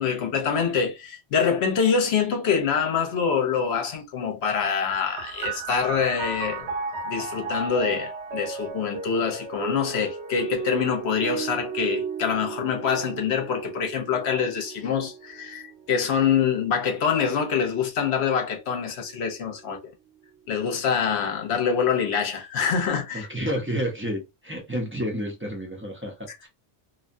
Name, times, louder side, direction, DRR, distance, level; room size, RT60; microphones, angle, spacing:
voice 1, 0.0-6.7 7.0-19.8 20.5-23.3, left 6 dB, 65° left, 1.0 m, -25 dB
sound 1, 4.9-18.1 19.0-19.8, right 5 dB, 65° right, 1.1 m, -35 dB
voice 2, 23.1-26.5, equal, 15° right, 0.5 m, -30 dB
2.7 x 2.2 x 2.6 m
omnidirectional pair, 1.2 m